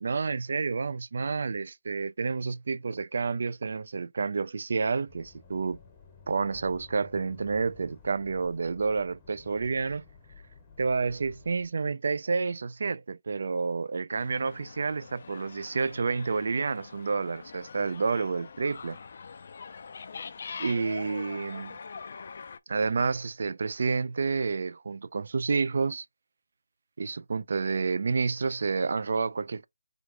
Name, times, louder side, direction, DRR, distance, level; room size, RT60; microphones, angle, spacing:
voice 1, 0.0-5.8 6.3-10.0 10.8-19.0 20.6-21.8 22.7-26.1 27.0-29.7, right 4 dB, 50° right, 0.3 m, -29 dB
sound 1, 5.1-11.7, left 5 dB, 10° left, 0.7 m, -53 dB
sound 2, 14.1-22.6, left 5 dB, 45° left, 0.4 m, -44 dB
3.5 x 3.4 x 3.1 m
figure-of-eight pair, 170°, 0 cm